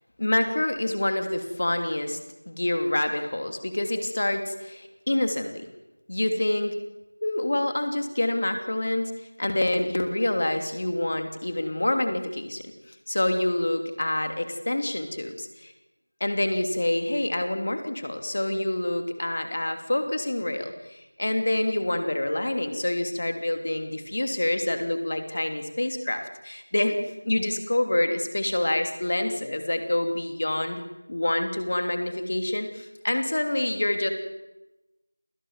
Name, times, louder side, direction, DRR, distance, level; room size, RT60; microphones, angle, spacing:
voice 1, 0.2-2.2 2.5-5.7 6.1-6.7 7.2-9.1 9.4-12.6 13.1-15.7 16.2-27.0 27.2-30.8 31.1-34.1, left 1 dB, 30° left, 6 dB, 2.9 m, -27 dB
29.0 x 26.5 x 7.4 m, 1.0 s
figure-of-eight pair, 180°, 0 cm